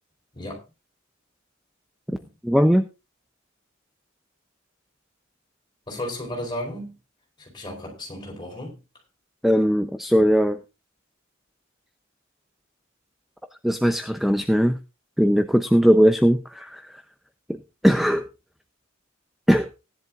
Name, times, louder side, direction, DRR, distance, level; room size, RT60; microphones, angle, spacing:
voice 1, 2.4-2.8 9.4-10.6 13.6-14.8 15.2-17.0 17.5-18.3 19.5-19.7, equal, ahead, 0.5 m, -19 dB
voice 2, 5.9-6.9 7.4-8.8, left 1 dB, 25° left, 4.5 m, -34 dB
18.5 x 10.5 x 2.4 m
head